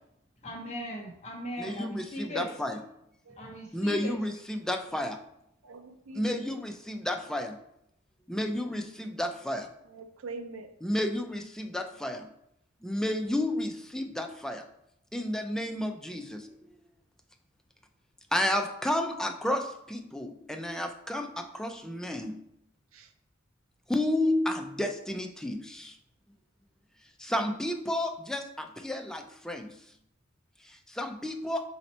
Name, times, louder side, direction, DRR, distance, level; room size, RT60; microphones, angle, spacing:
voice 1, 0.4-2.5 3.4-4.1, equal, 35° left, 0.8 m, -38 dB
voice 2, 1.6-2.0 2.4-2.8 3.7-5.1 6.2-7.5 8.3-9.6 10.8-12.2 12.8-14.6 15.1-16.2 18.3-19.6 19.9-21.3 21.6-22.3 23.9-25.6 27.3-28.4 28.8-29.2 29.5-29.6 31.0-31.6, left 1 dB, 5° left, 0.3 m, -31 dB
voice 3, 5.6-6.6 9.9-10.7 22.9-23.1, right 3 dB, 75° right, 0.5 m, -44 dB
4.1 x 2.8 x 4.2 m
head